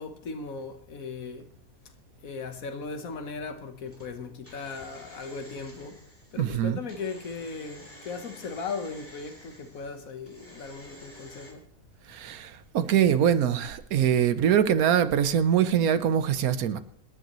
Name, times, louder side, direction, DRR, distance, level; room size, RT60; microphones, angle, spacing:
voice 1, 0.0-1.5 2.2-6.0 6.3-11.7, left 4 dB, 70° left, 1.6 m, -37 dB
sound 1, 3.9-11.5, equal, 10° left, 3.1 m, -51 dB
voice 2, 6.4-6.8 12.1-16.8, right 9 dB, 85° right, 1.3 m, -23 dB
25.5 x 10.5 x 3.1 m
omnidirectional pair, 1.5 m